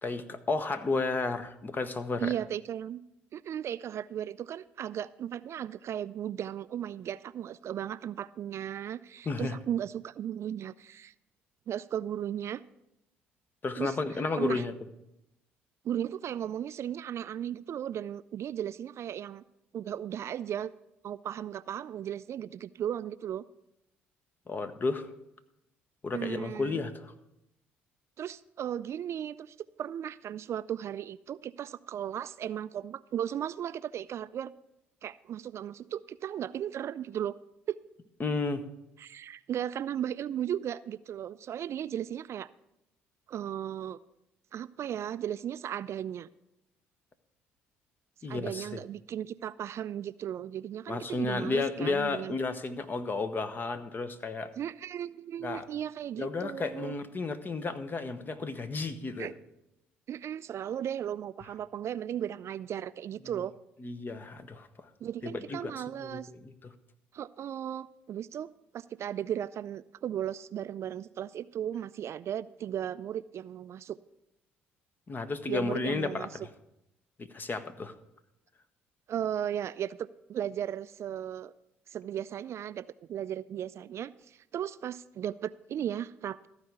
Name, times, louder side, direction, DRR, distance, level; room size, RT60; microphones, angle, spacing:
voice 1, 0.0-2.3 9.3-9.6 13.6-14.7 24.5-25.1 26.0-27.1 38.2-38.6 48.2-48.8 50.9-54.5 55.4-55.7 56.2-59.3 63.8-64.7 65.2-65.7 66.0-66.7 75.1-76.3 77.3-77.9, left 3 dB, 35° left, 10 dB, 1.0 m, -32 dB
voice 2, 2.2-3.0 3.3-11.1 11.7-12.6 13.8-14.0 14.4-14.6 15.8-19.4 19.7-20.7 21.0-23.4 26.1-26.8 28.2-34.5 35.0-37.3 37.7-37.8 39.0-42.5 43.3-44.0 44.5-46.3 48.3-52.3 54.6-57.0 59.2-59.3 60.1-63.5 65.0-66.3 67.1-68.5 68.7-74.0 75.5-76.3 79.1-81.5 81.9-86.5, right 10 dB, 50° right, 16 dB, 0.3 m, -36 dB
14.0 x 4.8 x 6.8 m, 0.88 s
hypercardioid pair, 55°, 6 cm